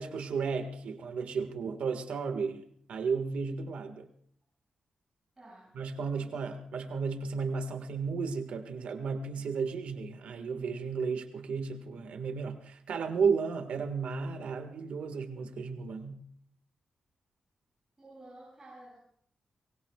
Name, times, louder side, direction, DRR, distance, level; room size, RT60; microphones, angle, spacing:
voice 1, 0.0-2.6 2.9-4.1 5.7-16.2, right 5 dB, 90° right, 7 dB, 1.7 m, -33 dB
voice 2, 5.4-5.8 6.2-6.5 18.0-19.0, right 1 dB, 20° right, -6 dB, 7.6 m, -52 dB
23.5 x 23.5 x 2.4 m, 0.63 s
wide cardioid pair, 130°, 2 cm